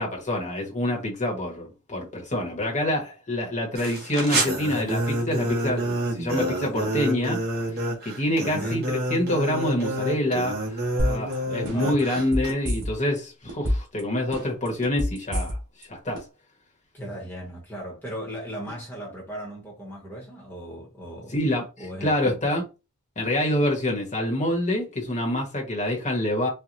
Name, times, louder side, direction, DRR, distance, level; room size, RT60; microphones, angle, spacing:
voice 1, 0.0-7.4 7.7-15.6 15.9-16.2 21.3-22.6 23.2-26.5, left 1 dB, 35° left, 1.3 m, -26 dB
sound 1, 3.8-12.5, right 1 dB, 45° right, 1.3 m, -28 dB
voice 2, 8.4-8.8 11.6-12.0 16.9-21.4 21.8-22.4, equal, 10° left, 1.2 m, -37 dB
sound 2, 11.0-11.3 11.6-13.2 13.5-14.0 14.3-15.8 16.1-16.2, equal, 75° right, 1.6 m, -26 dB
4.5 x 2.5 x 2.6 m
head